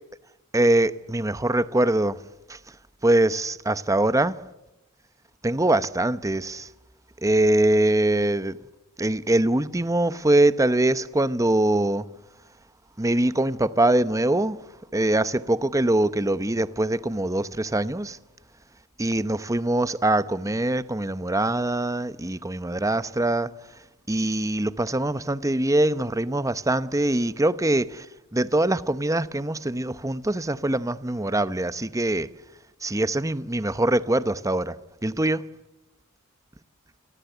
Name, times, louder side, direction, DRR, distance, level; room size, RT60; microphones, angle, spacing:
voice 1, 0.5-2.2 2.5-2.6 3.0-4.4 5.4-6.7 7.2-8.6 9.0-12.0 13.0-14.6 14.9-18.2 19.0-23.5 24.1-28.1 28.3-32.3 32.8-34.8 35.0-35.4, right 1 dB, 15° right, 0.9 m, -23 dB
28.5 x 23.5 x 8.1 m
head